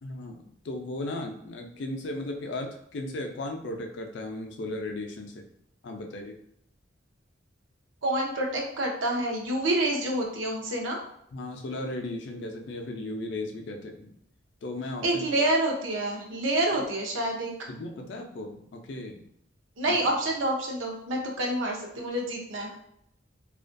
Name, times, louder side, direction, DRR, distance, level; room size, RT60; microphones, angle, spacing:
voice 1, 0.0-5.3 5.8-6.3 11.3-14.1 14.6-15.3 17.7-19.3 19.9-20.0, left 2 dB, 60° left, 3 dB, 0.4 m, -36 dB
voice 2, 8.0-11.0 15.0-17.5 19.8-22.7, right 1 dB, 80° right, 0 dB, 0.6 m, -28 dB
2.4 x 2.2 x 2.5 m, 0.72 s
head